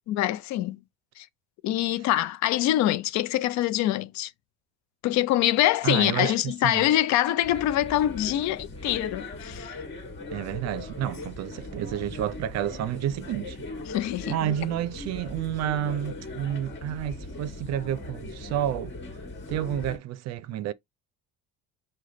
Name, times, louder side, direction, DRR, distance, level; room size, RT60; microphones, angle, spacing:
voice 1, 0.1-0.8 1.2-1.3 1.6-4.3 5.0-9.8 13.9-14.5, left 13 dB, 65° left, 0.5 m, -25 dB
voice 2, 5.8-6.8 10.3-13.6 14.3-18.9 19.5-20.7, right 11 dB, 55° right, 0.5 m, -30 dB
Laughter, 6.4-9.4, left 3 dB, 20° left, 1.0 m, -50 dB
sound 1, 7.4-20.0, left 2 dB, 35° left, 1.5 m, -39 dB
4.9 x 2.2 x 3.8 m
cardioid pair, 115°, 31 cm